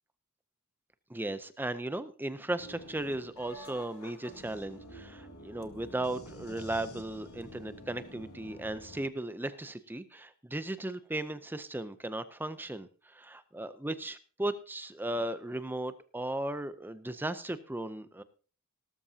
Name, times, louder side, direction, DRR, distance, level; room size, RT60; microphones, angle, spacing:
voice 1, 1.1-18.2, right 1 dB, 10° right, 12 dB, 0.6 m, -36 dB
sound 1, 2.6-9.0, equal, 75° left, 2.0 m, -49 dB
18.5 x 13.0 x 2.8 m, 0.39 s
head